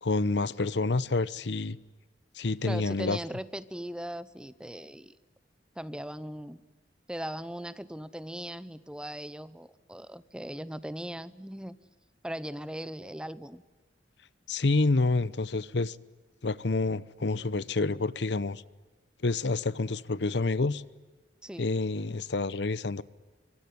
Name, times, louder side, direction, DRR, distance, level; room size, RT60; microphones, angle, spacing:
voice 1, 0.0-1.8 2.4-3.2 14.5-16.0 16.4-18.6 19.2-20.8 21.6-23.0, left 3 dB, 70° left, 0.8 m, -28 dB
voice 2, 2.6-5.2 5.8-6.6 7.1-11.8 12.2-13.6 21.4-21.7, equal, 5° right, 0.9 m, -39 dB
25.0 x 23.5 x 9.4 m
head